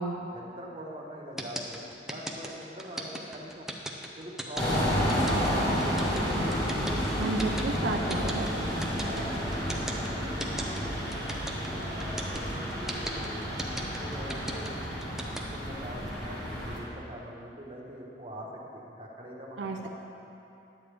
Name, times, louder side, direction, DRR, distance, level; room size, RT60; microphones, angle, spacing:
voice 1, 0.3-3.7 4.2-6.2 8.6-11.3 11.7-14.8 15.3-19.9, equal, 30° right, -3 dB, 1.2 m, -43 dB
sound 1, 1.4-15.4, right 1 dB, ahead, 0.5 m, -37 dB
sound 2, 4.6-16.8, equal, 20° left, 1.9 m, -31 dB
voice 2, 7.2-8.5 19.6-19.8, right 3 dB, 70° right, 2 dB, 0.5 m, -32 dB
11.0 x 8.5 x 3.4 m, 2.8 s
head